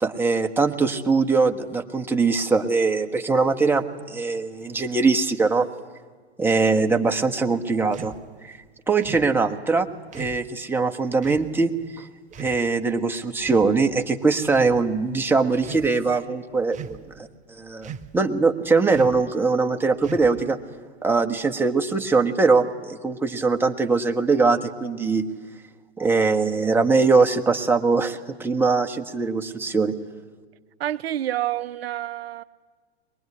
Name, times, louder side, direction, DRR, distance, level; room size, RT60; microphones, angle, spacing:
voice 1, 0.0-5.7 6.4-8.1 8.4-8.6 8.9-9.9 10.1-11.7 12.0-12.1 12.4-20.6 21.0-25.3 26.0-29.9, right 4 dB, 5° right, 3 dB, 1.5 m, -22 dB
sound 1, 7.9-8.2 9.0-9.3 10.1-10.4 11.2-11.5 12.3-12.6 13.4-14.0 14.5-14.8 15.5-15.9 16.7-17.1 17.8-18.2 18.9-19.3 20.0-20.5, right 7 dB, 20° right, 1.0 m, -38 dB
voice 2, 30.8-32.4, right 12 dB, 65° right, 15 dB, 0.7 m, -28 dB
23.5 x 20.0 x 9.9 m, 1.5 s
hypercardioid pair, 105°, 33 cm